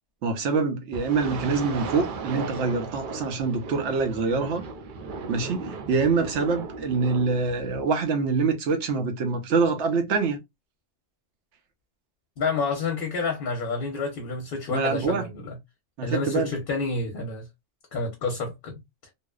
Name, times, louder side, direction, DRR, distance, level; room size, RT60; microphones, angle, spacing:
voice 1, 0.2-4.6 5.3-10.4 14.7-15.3 16.0-16.5, right 4 dB, 80° right, 1.0 m, -25 dB
sound 1, 0.9-7.9, right 4 dB, 60° right, 0.6 m, -36 dB
voice 2, 12.4-15.6 16.0-17.5 17.9-18.7, left 4 dB, 60° left, 0.8 m, -29 dB
2.7 x 2.0 x 2.2 m
omnidirectional pair, 1.2 m